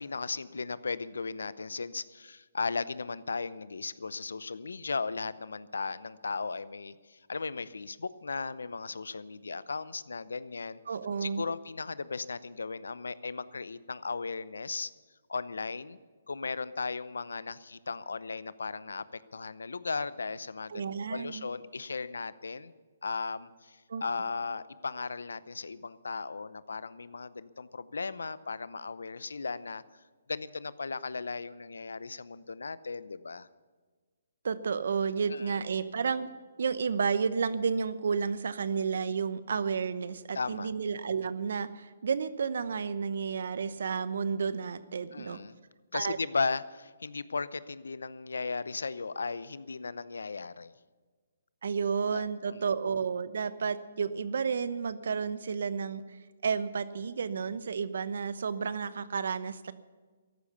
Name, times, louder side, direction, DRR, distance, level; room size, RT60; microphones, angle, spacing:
voice 1, 0.0-10.8 11.2-14.9 15.3-16.0 16.3-22.7 23.0-29.8 30.3-33.5 35.3-35.6 40.3-40.7 45.1-45.6 45.9-50.7 52.1-52.6, left 4 dB, 85° left, 16 dB, 0.7 m, -36 dB
voice 2, 10.9-11.5 20.7-21.5 23.9-24.0 34.4-36.3 36.6-45.4 45.9-46.2 51.6-56.0 56.4-59.7, right 6 dB, 65° right, 14 dB, 0.9 m, -31 dB
14.0 x 12.0 x 6.9 m, 1.4 s
hypercardioid pair, 145°, 0 cm